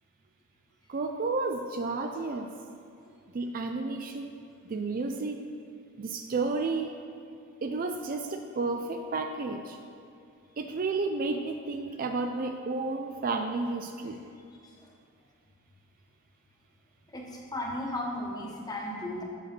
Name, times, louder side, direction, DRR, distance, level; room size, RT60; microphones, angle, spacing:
voice 1, 0.9-2.5 3.3-4.4 4.7-5.5 6.0-6.9 7.6-9.8 10.6-14.2, right 3 dB, 40° right, 5 dB, 0.4 m, -31 dB
voice 2, 17.1-19.2, left 1 dB, 15° left, -1 dB, 1.2 m, -35 dB
7.8 x 6.4 x 5.9 m, 2.5 s
head